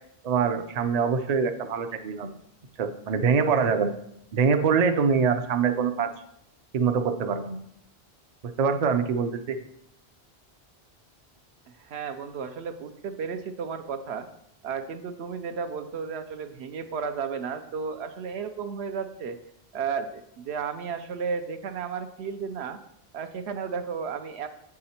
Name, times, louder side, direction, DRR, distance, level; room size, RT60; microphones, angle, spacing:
voice 1, 0.2-2.3 2.8-3.9 4.3-6.1 6.7-7.6 8.6-9.6, right 6 dB, 50° right, 8 dB, 0.5 m, -24 dB
voice 2, 11.8-14.3 14.6-19.4 19.7-22.8 23.1-24.5, right 6 dB, 80° right, 8 dB, 0.9 m, -33 dB
7.6 x 4.8 x 4.2 m, 0.75 s
omnidirectional pair, 1.1 m